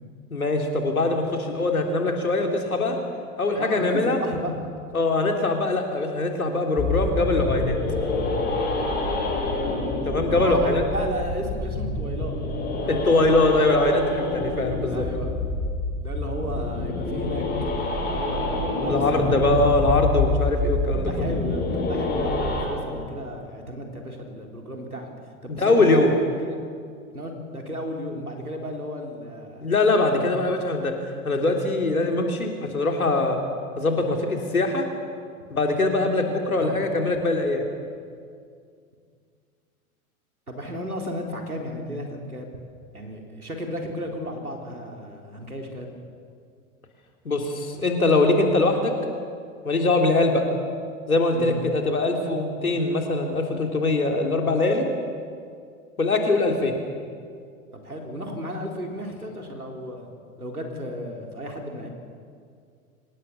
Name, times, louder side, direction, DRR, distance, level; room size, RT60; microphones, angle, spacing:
voice 1, 0.3-3.0 3.4-4.2 4.9-7.8 10.1-10.9 12.9-15.0 18.9-21.1 22.9-23.0 25.5-26.1 29.6-31.0 31.2-33.4 33.8-34.8 35.5-37.6 47.3-48.9 49.6-50.5 51.1-54.9 56.0-56.7, left 2 dB, 80° left, 3 dB, 3.5 m, -22 dB
voice 2, 3.5-4.5 10.3-13.4 14.9-15.3 16.0-19.5 20.9-25.1 25.4-26.6 27.1-29.7 36.6-36.8 40.5-42.5 42.9-45.9 51.3-51.6 57.7-61.9, equal, 90° right, 2 dB, 3.9 m, -34 dB
sound 1, 6.8-22.7, left 2 dB, 20° left, 5.9 m, -27 dB
25.5 x 19.0 x 7.0 m, 2.2 s
figure-of-eight pair, 95°, 43 cm